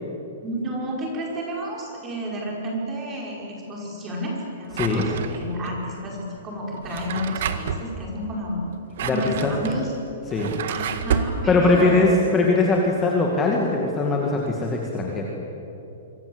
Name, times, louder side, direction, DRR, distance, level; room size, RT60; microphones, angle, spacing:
voice 1, 0.4-8.6 9.1-9.9 10.7-12.1, equal, 15° right, -2 dB, 5.4 m, -31 dB
Drawer open or close, 4.7-5.7 6.7-7.9 8.7-11.4, right 8 dB, 50° right, 1.8 m, -29 dB
voice 2, 9.0-9.5 10.3-10.5 11.5-15.3, left 3 dB, 10° left, -1 dB, 2.2 m, -21 dB
27.0 x 24.5 x 8.1 m, 2.9 s
hypercardioid pair, 170°, 0 cm